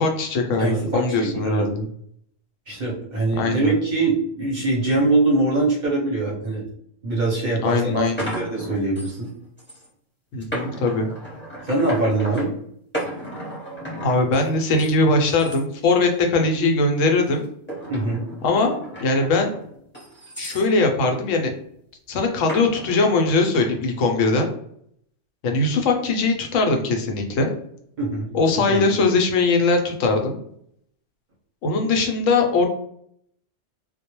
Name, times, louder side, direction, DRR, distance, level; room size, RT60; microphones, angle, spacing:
voice 1, 0.0-1.9 3.4-3.7 7.6-8.3 10.3-11.1 14.0-17.4 18.4-19.5 20.4-21.5 22.1-24.5 25.4-27.5 28.3-30.4 31.6-32.7, left 3 dB, 90° left, 3 dB, 0.9 m, -21 dB
voice 2, 0.6-1.7 2.7-6.7 7.0-9.3 11.6-12.5 17.9-18.3 28.0-28.3 28.7-28.8, right 2 dB, 45° right, -4 dB, 0.7 m, -23 dB
sound 1, 7.1-7.2 7.7-9.3 9.6-9.9 10.4-12.5 12.9-14.9 15.3-15.6 16.1-16.5 17.2-20.7 22.5-23.3, right 1 dB, 10° left, 0.8 m, -35 dB
2.2 x 2.1 x 2.9 m, 0.68 s
omnidirectional pair, 1.3 m